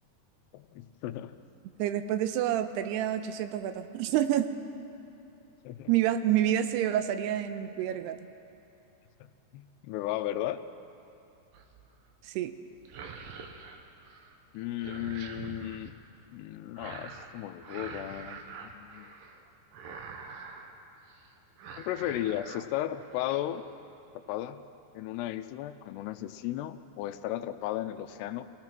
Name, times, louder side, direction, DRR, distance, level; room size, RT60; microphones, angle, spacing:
voice 1, 0.5-1.3 5.6-5.9 9.5-10.6 14.5-15.9 16.3-18.4 18.7-19.1 21.8-23.6 24.2-24.6 24.9-28.4, left 13 dB, 90° left, 10 dB, 2.8 m, -35 dB
voice 2, 1.8-4.5 5.9-8.2 12.3-12.5, right 11 dB, 90° right, 9 dB, 2.8 m, -28 dB
sound 1, 11.5-11.9 12.8-14.3 14.6-15.9 16.8-17.3 17.6-19.4 19.7-20.7 21.1-21.3 21.6-22.6 23.0-23.4, right 5 dB, 70° right, 2.6 m, -45 dB
26.0 x 17.0 x 6.0 m, 2.8 s
omnidirectional pair, 4.7 m